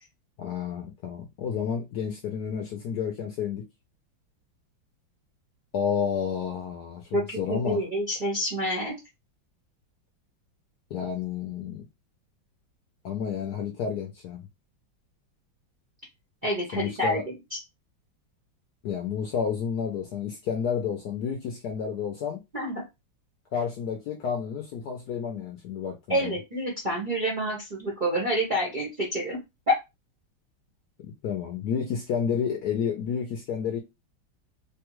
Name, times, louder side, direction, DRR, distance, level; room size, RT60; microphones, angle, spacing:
voice 1, 0.4-3.6 5.7-7.8 10.9-11.8 13.0-14.5 16.7-17.2 18.8-22.4 23.5-26.4 31.2-33.8, left 7 dB, 70° left, 0.9 m, -30 dB
voice 2, 7.1-9.0 16.4-17.6 22.5-22.8 26.1-29.4, right 1 dB, 45° right, 0.6 m, -28 dB
3.4 x 2.3 x 3.0 m
omnidirectional pair, 2.2 m